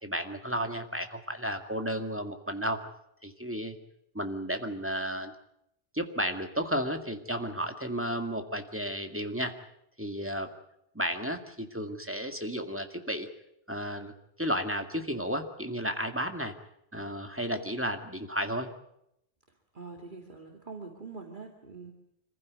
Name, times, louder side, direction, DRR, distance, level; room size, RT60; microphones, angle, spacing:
voice 1, 0.0-2.8 3.2-3.8 4.1-5.3 5.9-9.5 10.0-10.5 10.9-13.3 13.7-14.1 14.4-16.5 16.9-18.7, equal, 10° right, 5 dB, 2.1 m, -33 dB
voice 2, 19.7-21.9, right 4 dB, 50° right, 2 dB, 2.4 m, -44 dB
26.5 x 15.5 x 9.5 m, 0.78 s
omnidirectional pair, 1.1 m